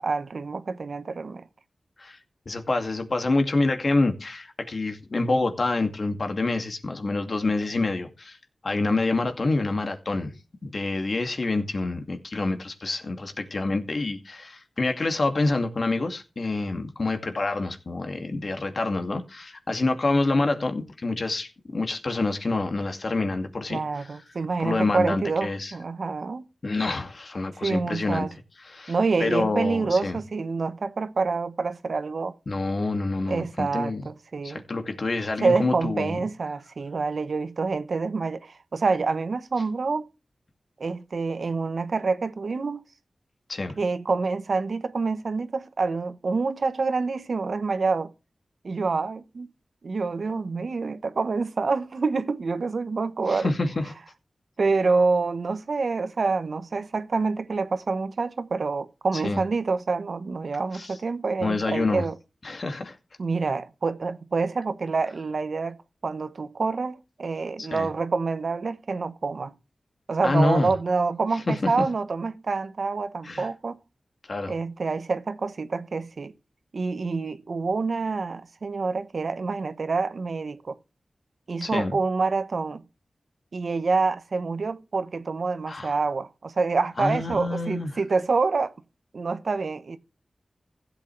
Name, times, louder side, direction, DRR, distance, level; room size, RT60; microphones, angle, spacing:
voice 1, 0.0-1.4 23.7-26.4 27.6-28.3 28.9-32.3 33.3-34.6 35.4-40.1 40.8-42.8 43.8-48.1 48.6-49.5 49.8-53.5 54.6-62.1 63.2-69.5 70.1-73.8 74.5-76.3 76.7-80.8 81.5-82.8 83.5-88.7 89.1-90.0, right 4 dB, 70° right, 1.0 m, -27 dB
voice 2, 2.5-8.4 8.6-10.3 10.6-24.1 24.6-25.7 26.6-28.3 28.7-28.9 29.2-30.2 32.5-34.1 34.4-36.2 43.5-43.8 53.3-53.9 59.2-59.4 60.7-60.9 61.4-62.0 62.4-63.0 67.6-67.9 70.2-70.7 71.5-71.8 73.2-73.5 74.3-74.5 81.6-82.0 85.7-86.0 87.0-87.9, left 2 dB, 60° left, 2.3 m, -27 dB
15.5 x 8.3 x 3.3 m
cardioid pair, 50°, 0 cm